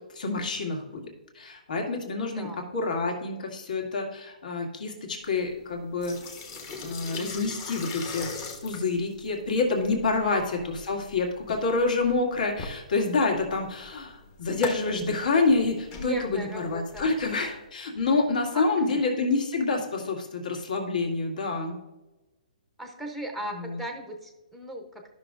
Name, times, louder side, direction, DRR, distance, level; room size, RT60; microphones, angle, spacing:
voice 1, 0.1-1.1 1.3-2.5 2.7-6.2 6.8-8.3 8.6-21.8 23.5-23.8, left 3 dB, 65° left, 1 dB, 2.2 m, -27 dB
voice 2, 2.2-2.6 10.1-10.7 15.9-17.1 18.5-18.9 22.8-25.1, right 1 dB, ahead, 2 dB, 0.8 m, -38 dB
sound 1, 5.2-17.6, left 4 dB, 25° left, 1.1 m, -41 dB
13.0 x 6.1 x 2.5 m, 1.1 s
hypercardioid pair, 165°, 5 cm